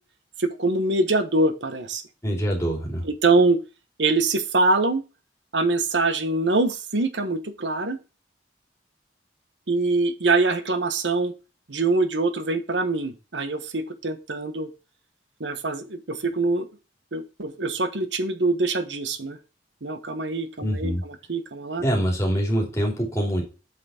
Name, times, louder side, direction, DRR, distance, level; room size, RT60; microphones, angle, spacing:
voice 1, 0.4-2.0 3.0-3.6 4.0-5.0 5.5-8.0 9.7-11.3 11.7-14.7 15.4-16.7 17.1-19.4 19.8-21.8, right 3 dB, 85° right, 10 dB, 1.2 m, -24 dB
voice 2, 2.2-3.1 20.6-21.0 21.8-23.4, equal, 15° left, -1 dB, 3.2 m, -24 dB
7.7 x 6.0 x 4.3 m, 0.30 s
head